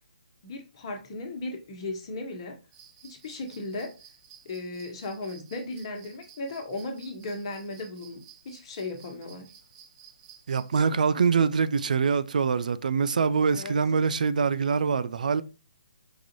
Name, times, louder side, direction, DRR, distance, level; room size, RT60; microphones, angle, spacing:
voice 1, 0.4-2.6 3.0-3.9 4.4-8.2 8.4-9.5 13.5-13.7, left 2 dB, 40° left, 1.0 m, -36 dB
sound 1, 2.7-10.8, right 8 dB, 30° right, 0.9 m, -54 dB
voice 2, 10.5-15.4, right 5 dB, 65° right, 0.3 m, -24 dB
4.7 x 2.5 x 2.9 m
figure-of-eight pair, 140°, 5 cm